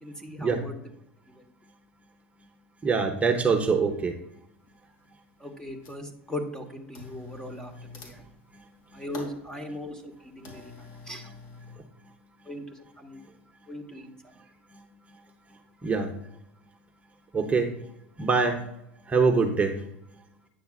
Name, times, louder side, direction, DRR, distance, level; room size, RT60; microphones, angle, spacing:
voice 1, 0.0-0.8 5.4-8.2 8.9-10.7 11.0-11.3 12.4-13.2 13.7-14.1, left 1 dB, 10° left, 5 dB, 1.2 m, -39 dB
voice 2, 2.8-4.2 8.5-8.7 8.9-9.0 12.0-12.1 13.2-13.3 14.7-14.8 15.1-15.2 15.5-16.1 17.3-17.7 18.2-18.7 19.0-19.8 20.1-20.2, right 4 dB, 20° right, 2 dB, 1.0 m, -25 dB
sound 1, 4.0-4.1 4.7-5.2 5.5-6.2 6.9-11.8, left 3 dB, 60° left, 2.4 m, -46 dB
9.1 x 6.9 x 2.4 m, 0.81 s
hypercardioid pair, 95°, 7 cm